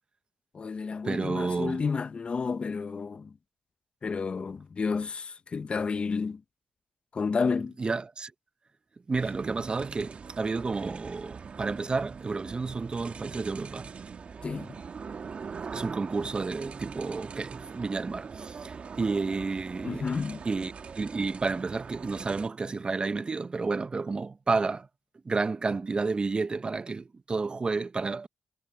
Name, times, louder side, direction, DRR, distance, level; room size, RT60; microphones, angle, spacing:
voice 1, 0.5-3.3 4.0-6.4 7.1-7.7 14.4-14.8 19.8-20.4, left 5 dB, 45° left, 0.9 m, -31 dB
voice 2, 1.0-1.8 7.8-8.3 9.1-13.9 15.7-20.1 20.4-24.9 25.2-28.3, right 4 dB, 40° right, 0.9 m, -31 dB
sound 1, 9.1-22.5, right 5 dB, 55° right, 1.6 m, -42 dB
supercardioid pair, 55°, 3 cm